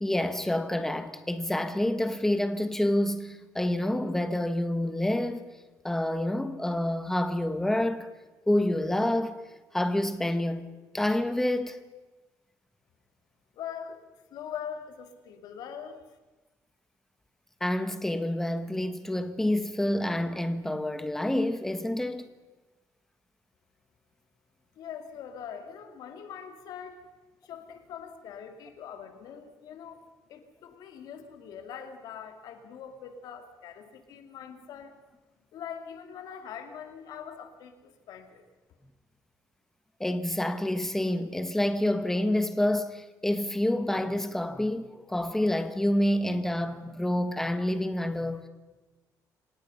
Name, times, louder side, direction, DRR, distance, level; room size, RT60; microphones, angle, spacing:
voice 1, 0.0-5.5 5.8-8.1 8.5-9.5 9.7-10.7 10.9-11.8 17.6-22.3 40.0-48.5, left 1 dB, 5° left, 1.2 m, -28 dB
voice 2, 13.5-14.0 14.3-16.0 24.8-27.0 27.4-35.0 35.5-38.4, left 8 dB, 70° left, 2.5 m, -42 dB
26.5 x 18.0 x 5.7 m
cardioid pair, 160°, 7 cm